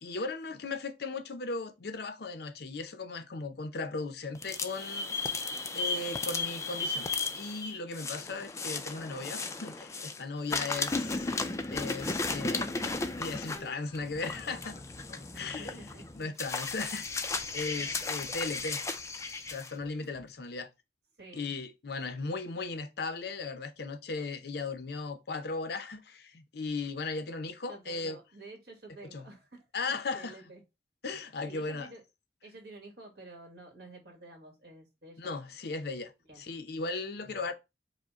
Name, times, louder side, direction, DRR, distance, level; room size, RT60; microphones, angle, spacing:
voice 1, 0.0-5.2 5.7-7.1 7.3-11.3 11.7-12.7 13.2-14.8 15.1-15.9 16.2-17.3 17.5-18.9 19.5-20.7 21.3-28.2 29.1-29.3 29.7-30.4 31.0-31.9 35.2-36.1 36.4-37.5, left 3 dB, 60° left, 0.7 m, -37 dB
sound 1, 4.3-10.2 10.5-19.7, left 3 dB, 15° left, 0.4 m, -35 dB
Drum kit / Drum, 13.1-20.4, right 1 dB, 25° right, 1.0 m, -63 dB
voice 2, 15.3-16.3 17.8-18.0 21.2-21.6 27.7-30.6 31.4-32.0 32.4-35.4 36.2-36.4, right 2 dB, 65° right, 1.7 m, -51 dB
4.9 x 2.2 x 4.8 m
head